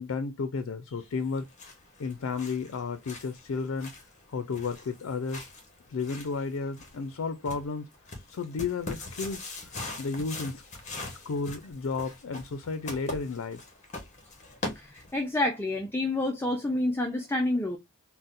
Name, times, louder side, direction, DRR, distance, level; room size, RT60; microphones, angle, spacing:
voice 1, 0.0-1.5 2.0-3.9 4.3-5.5 5.9-9.7 10.0-10.6 11.1-13.6, left 4 dB, 85° left, 0.4 m, -33 dB
sound 1, 1.2-15.4, left 2 dB, 35° left, 1.0 m, -42 dB
voice 2, 14.8-17.8, left 1 dB, 10° left, 0.4 m, -28 dB
4.0 x 2.1 x 2.5 m
head